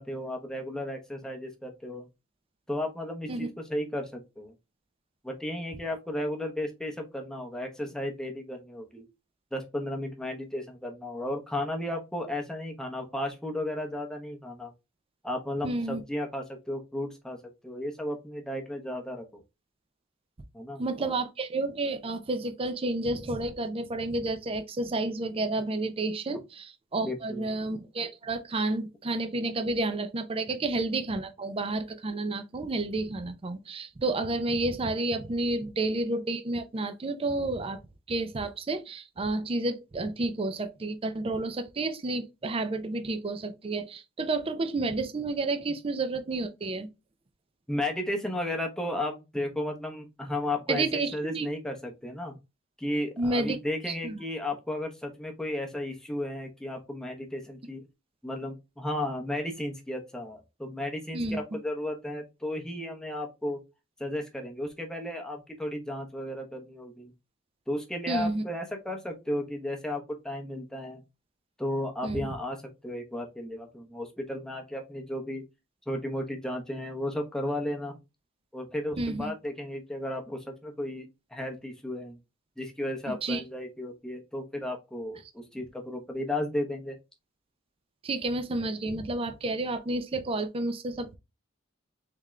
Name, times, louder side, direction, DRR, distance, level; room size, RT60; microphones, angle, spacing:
voice 1, 0.0-2.1 2.7-4.5 5.2-9.0 9.5-14.7 15.2-17.4 17.6-19.4 20.5-21.1 26.3-26.4 27.0-27.5 35.6-35.7 47.7-52.4 52.8-57.8 58.2-63.6 64.0-67.1 67.7-71.0 71.6-75.4 75.9-78.0 78.5-82.2 82.6-87.0, left 1 dB, 5° left, 0.8 m, -34 dB
voice 2, 15.6-16.0 20.8-37.8 38.1-46.9 50.7-51.5 53.2-53.6 53.9-54.2 61.1-61.4 68.1-68.4 72.0-72.3 79.0-79.3 83.1-83.4 88.0-91.2, right 2 dB, 30° right, 0.5 m, -30 dB
3.6 x 3.4 x 3.1 m
head